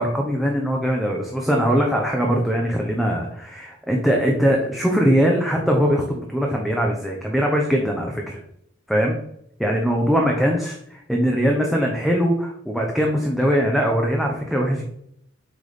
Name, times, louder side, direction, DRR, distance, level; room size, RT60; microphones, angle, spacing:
voice 1, 0.0-8.4 8.9-9.2 9.6-14.8, equal, ahead, -1 dB, 0.8 m, -21 dB
8.0 x 3.6 x 5.0 m, 0.72 s
head